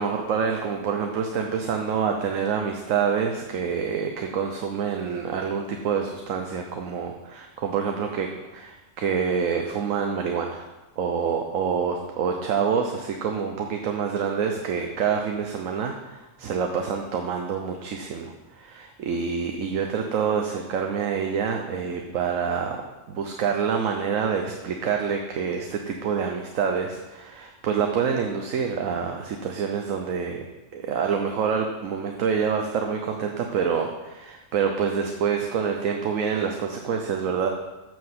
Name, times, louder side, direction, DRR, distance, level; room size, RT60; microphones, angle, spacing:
voice 1, 0.0-10.7 11.0-22.8 23.1-30.4 30.7-37.5, right 6 dB, 85° right, 3 dB, 1.2 m, -27 dB
7.6 x 6.1 x 7.4 m, 1.1 s
omnidirectional pair, 1.3 m